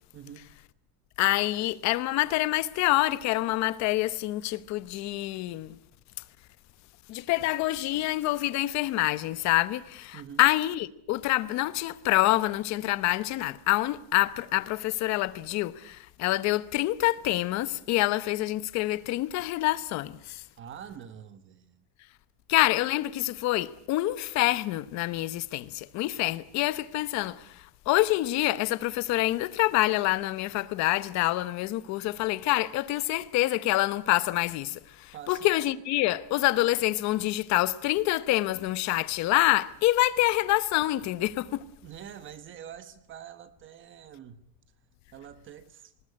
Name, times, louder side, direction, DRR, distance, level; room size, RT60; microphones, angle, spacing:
voice 1, 0.1-0.5 10.1-10.4 20.6-21.9 35.1-35.5 41.8-44.5 45.1-45.9, right 9 dB, 25° right, 1.2 m, -45 dB
voice 2, 1.2-5.8 7.1-20.4 22.5-41.6, left 17 dB, 35° left, 1.0 m, -26 dB
20.0 x 20.0 x 9.8 m
cardioid pair, 175°, 45 cm